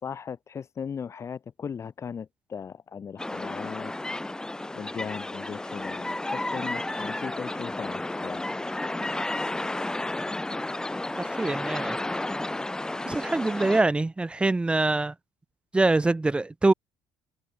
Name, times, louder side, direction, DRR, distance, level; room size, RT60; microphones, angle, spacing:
voice 1, 0.0-3.9 4.8-8.4, left 7 dB, 30° left, 5.6 m, -38 dB
sound 1, 3.2-13.8, left 2 dB, 5° left, 1.6 m, -32 dB
voice 2, 11.2-12.0 13.1-15.1 15.7-16.7, right 2 dB, 10° right, 2.3 m, -24 dB
cardioid pair, 175°, 10 cm